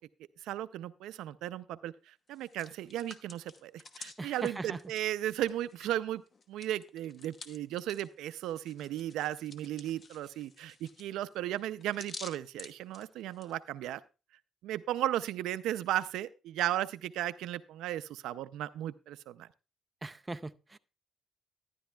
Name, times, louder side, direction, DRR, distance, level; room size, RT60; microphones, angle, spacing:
voice 1, 0.4-6.2 6.5-14.0 14.6-19.5, right 13 dB, 90° right, 0.4 m, -35 dB
Hands, 2.3-6.0 6.3-13.5, left 4 dB, 40° left, 1.0 m, -51 dB
voice 2, 4.2-4.8 20.0-20.8, right 2 dB, 20° right, 0.5 m, -40 dB
12.5 x 10.5 x 2.3 m
cardioid pair, 90°, 0 cm